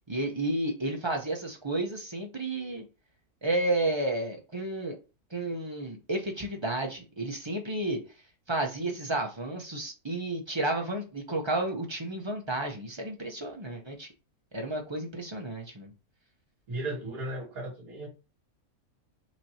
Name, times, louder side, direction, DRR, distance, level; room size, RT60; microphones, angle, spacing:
voice 1, 0.1-2.8 3.4-4.9 5.3-8.0 8.5-14.1 14.5-15.9, right 2 dB, 25° right, 0.7 m, -31 dB
voice 2, 16.7-18.1, right 2 dB, 70° right, 2.6 m, -35 dB
6.0 x 2.9 x 2.9 m
omnidirectional pair, 1.6 m